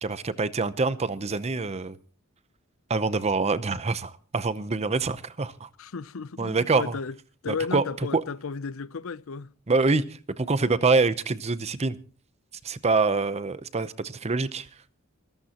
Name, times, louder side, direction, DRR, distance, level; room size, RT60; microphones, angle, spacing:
voice 1, 0.0-2.0 2.9-5.7 6.4-6.9 7.5-7.8 8.1-8.2 9.7-12.0 12.6-14.7, right 3 dB, 30° right, 0.7 m, -25 dB
voice 2, 5.8-7.2 7.4-9.5, left 5 dB, 75° left, 0.6 m, -34 dB
25.0 x 14.0 x 2.9 m
head